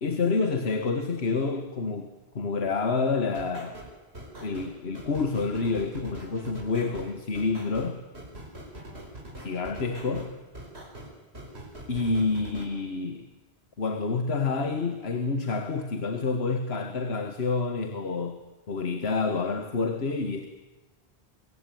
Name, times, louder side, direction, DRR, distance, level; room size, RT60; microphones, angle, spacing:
voice 1, 0.0-3.8 4.4-8.0 9.4-10.3 11.9-13.3 13.8-18.4 18.7-20.5, left 4 dB, 75° left, 1.8 m, -28 dB
sound 1, 3.3-12.7, right 1 dB, 80° right, 5.3 m, -43 dB
25.0 x 23.0 x 9.3 m
omnidirectional pair, 1.1 m